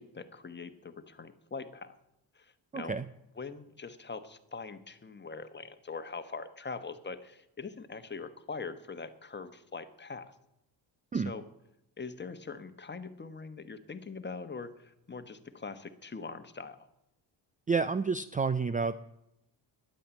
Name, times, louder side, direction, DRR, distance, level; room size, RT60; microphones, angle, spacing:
voice 1, 0.0-1.9 2.3-2.9 3.4-10.3 11.1-11.4 12.0-16.8, left 4 dB, 25° left, 10 dB, 1.3 m, -42 dB
voice 2, 2.7-3.0 11.1-11.3 17.7-19.1, right 4 dB, 20° right, 14 dB, 0.4 m, -30 dB
12.0 x 9.9 x 7.1 m, 0.85 s
cardioid pair, 90°, 44 cm